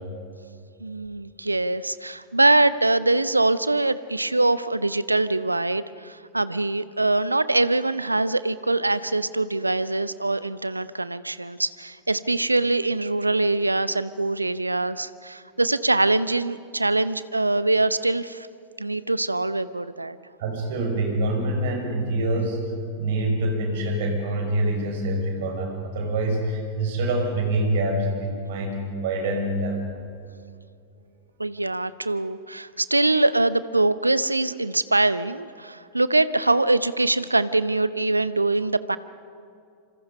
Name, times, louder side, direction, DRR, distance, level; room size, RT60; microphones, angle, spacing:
voice 1, 0.8-18.5 18.8-20.2 31.4-39.0, right 2 dB, 85° right, 16 dB, 0.7 m, -23 dB
voice 2, 20.4-22.6 23.0-29.8, right 1 dB, 55° right, 3 dB, 5.8 m, -25 dB
27.0 x 26.0 x 5.4 m, 2.5 s
figure-of-eight pair, 90°, 0 cm